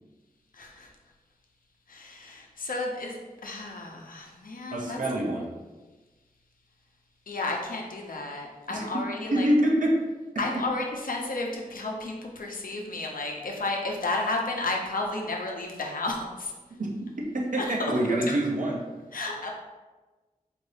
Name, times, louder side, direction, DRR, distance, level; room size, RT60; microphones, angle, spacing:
voice 1, 0.5-0.9 1.9-5.0 7.3-9.5 10.4-16.5 17.6-17.9 18.3-18.4 19.1-19.5, left 2 dB, 75° left, 0 dB, 0.7 m, -32 dB
voice 2, 4.7-5.5 8.7-8.8 9.3-9.9 10.5-10.6 16.7-16.9 17.3-18.8, right 1 dB, 65° right, -2 dB, 0.7 m, -25 dB
4.5 x 2.6 x 3.3 m, 1.2 s
wide cardioid pair, 75°, 14 cm